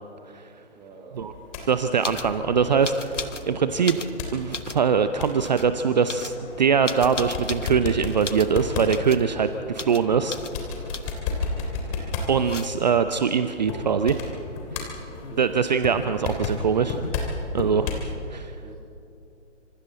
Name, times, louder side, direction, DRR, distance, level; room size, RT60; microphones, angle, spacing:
voice 1, 0.8-1.5 15.1-15.5 18.6-18.8, right 4 dB, 15° right, -3 dB, 2.0 m, -45 dB
sound 1, 1.1-18.1, left 3 dB, 30° left, 3.3 m, -34 dB
voice 2, 1.7-4.0 4.3-10.4 11.9-14.2 15.4-17.0 17.5-18.6, right 6 dB, 40° right, 10 dB, 0.8 m, -23 dB
sound 2, 2.0-2.3 2.8-3.5 3.8-4.8 5.4-5.7 6.1-7.8 8.2-8.6 8.9-9.3 9.8-10.0 10.3-10.5 10.9-11.3 12.2-13.0 14.8-14.9 15.0-15.7, left 3 dB, 85° left, 1.2 m, -36 dB
26.5 x 26.0 x 4.1 m, 2.6 s
figure-of-eight pair, 135°, 36 cm